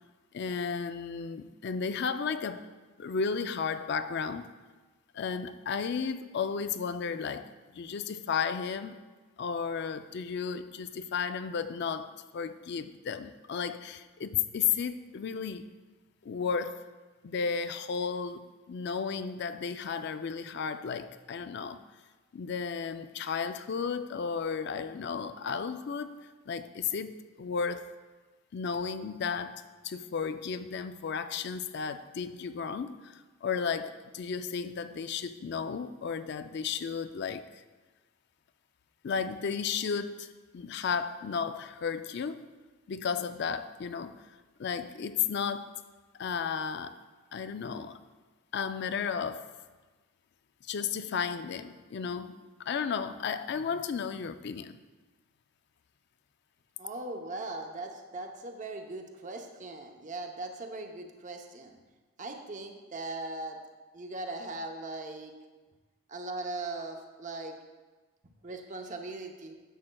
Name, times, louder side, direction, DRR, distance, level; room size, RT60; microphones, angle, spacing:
voice 1, 0.3-2.7 3.0-4.5 5.1-9.0 9.4-15.7 16.2-16.8 17.2-21.8 22.3-27.1 27.4-27.9 28.5-37.6 39.0-42.5 42.9-44.2 44.6-45.8 46.2-47.0 47.3-48.0 48.5-49.5 50.6-54.8, left 6 dB, 55° left, 11 dB, 0.4 m, -34 dB
voice 2, 56.8-61.8 62.2-63.6 63.9-65.3 66.1-67.5 68.4-69.5, right 2 dB, 35° right, 4 dB, 0.7 m, -39 dB
10.0 x 7.5 x 2.3 m, 1.3 s
head